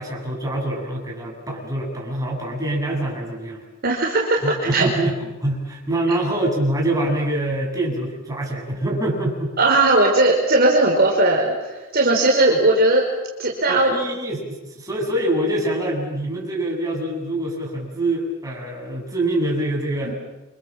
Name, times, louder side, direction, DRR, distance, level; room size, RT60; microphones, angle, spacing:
voice 1, 0.0-3.6 4.4-9.5 12.5-12.6 13.7-20.1, right 1 dB, 15° right, -1 dB, 7.8 m, -25 dB
voice 2, 3.8-4.9 6.1-6.2 9.6-13.1 13.4-13.9 20.0-20.1, right 2 dB, 50° right, -1 dB, 4.8 m, -18 dB
29.5 x 25.5 x 7.6 m, 1.1 s
head